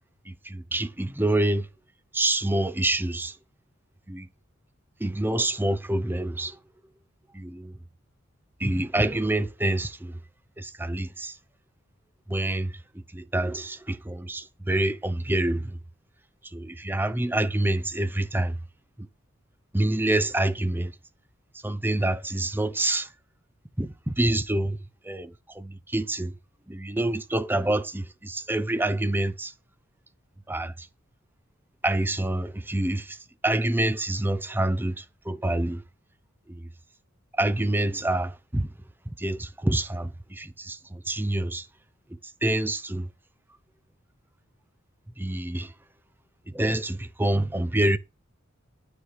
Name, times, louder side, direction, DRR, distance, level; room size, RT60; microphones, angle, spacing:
voice 1, 0.5-1.6 2.1-3.3 4.1-4.2 5.0-6.5 7.4-7.6 8.6-9.9 10.6-11.3 12.3-12.7 13.1-15.6 16.5-18.5 19.7-20.9 21.6-23.1 23.8-23.9 24.2-24.8 25.1-25.3 25.6-26.3 26.7-29.5 30.5-30.7 31.8-33.0 33.4-34.9 35.3-35.8 37.4-38.7 39.2-40.1 40.4-40.8 41.1-41.6 42.4-43.0 45.2-45.7 46.5-48.0, right 1 dB, 10° right, 0.7 m, -26 dB
11.5 x 6.8 x 4.7 m
head